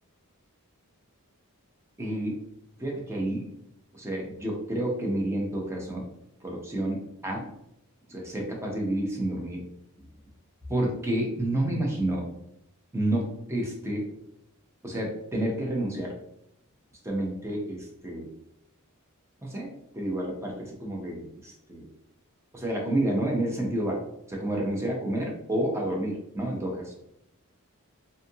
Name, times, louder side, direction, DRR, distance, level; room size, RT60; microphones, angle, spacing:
voice 1, 2.0-2.4 2.8-3.5 3.9-6.0 6.4-7.5 8.1-9.6 10.7-12.2 12.9-14.1 14.8-16.1 17.0-18.3 19.4-19.7 20.0-21.9 22.5-24.0 24.3-26.9, right 1 dB, 10° right, -1 dB, 0.6 m, -29 dB
2.6 x 2.5 x 2.6 m, 0.79 s
head